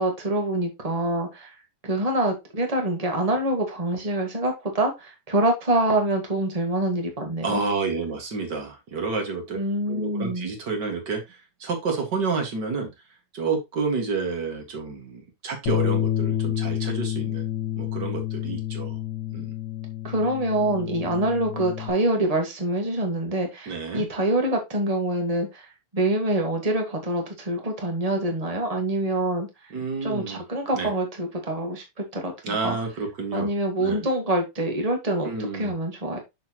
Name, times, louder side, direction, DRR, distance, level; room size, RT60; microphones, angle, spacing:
voice 1, 0.0-1.5 1.8-7.6 9.5-10.5 20.0-25.6 25.9-29.5 30.0-32.8 33.3-36.2, right 1 dB, 20° right, 3 dB, 1.1 m, -25 dB
voice 2, 7.4-9.6 9.9-11.2 11.6-12.9 13.3-17.4 17.8-19.0 19.3-19.5 23.7-24.1 29.7-30.4 30.7-30.9 32.4-33.5 33.8-34.0 35.2-35.7, right 4 dB, 40° right, 3 dB, 2.0 m, -29 dB
Bass guitar, 15.7-21.9, left 12 dB, 70° left, 2.6 m, -29 dB
6.6 x 6.3 x 3.0 m, 0.22 s
omnidirectional pair, 3.6 m